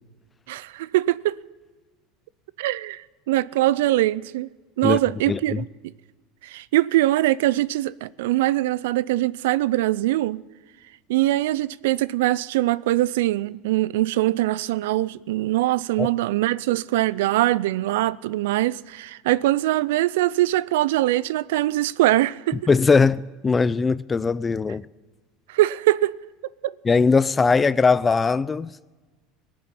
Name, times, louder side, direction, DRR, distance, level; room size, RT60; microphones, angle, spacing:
voice 1, 0.5-1.4 2.6-4.5 4.8-5.7 6.4-10.4 11.1-22.7 25.5-26.1 26.6-26.7, right 16 dB, 80° right, 0.3 m, -22 dB
voice 2, 5.3-5.6 16.0-16.1 22.7-24.9 26.8-28.7, left 4 dB, 20° left, 0.4 m, -20 dB
19.5 x 7.6 x 7.2 m
hypercardioid pair, 90°, 0 cm